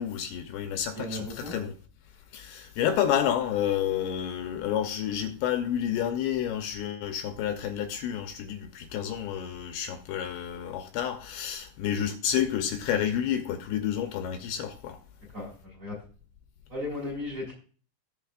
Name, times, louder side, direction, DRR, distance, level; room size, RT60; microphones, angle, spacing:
voice 1, 0.0-1.7 2.3-15.0, left 9 dB, 80° left, 3.0 m, -30 dB
voice 2, 0.9-1.6 15.3-16.0 16.7-17.5, left 2 dB, 20° right, 3.9 m, -36 dB
18.5 x 6.4 x 2.5 m
omnidirectional pair, 5.2 m